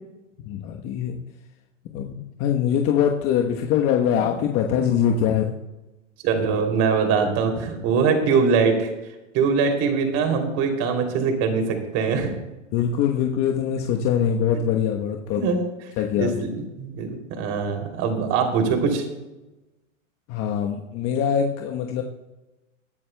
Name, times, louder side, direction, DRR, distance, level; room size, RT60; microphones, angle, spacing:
voice 1, 0.4-1.2 1.9-5.5 12.7-15.4 16.0-16.4 20.3-22.0, left 8 dB, 35° left, 2 dB, 1.1 m, -23 dB
voice 2, 6.2-8.9 9.3-12.3 15.3-15.6 16.2-16.5 16.8-19.0, right 5 dB, 40° right, 5 dB, 3.0 m, -22 dB
21.0 x 11.0 x 2.2 m, 1.0 s
hypercardioid pair, 115°, 38 cm